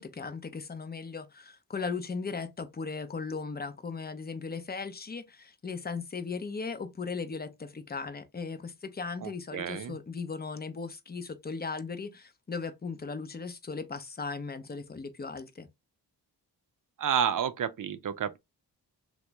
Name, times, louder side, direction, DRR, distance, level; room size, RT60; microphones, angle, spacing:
voice 1, 0.0-15.7, left 4 dB, 25° left, 0.6 m, -37 dB
voice 2, 9.2-10.0 17.0-18.4, right 8 dB, 55° right, 0.5 m, -30 dB
2.9 x 2.0 x 3.4 m
cardioid pair, 60°, 39 cm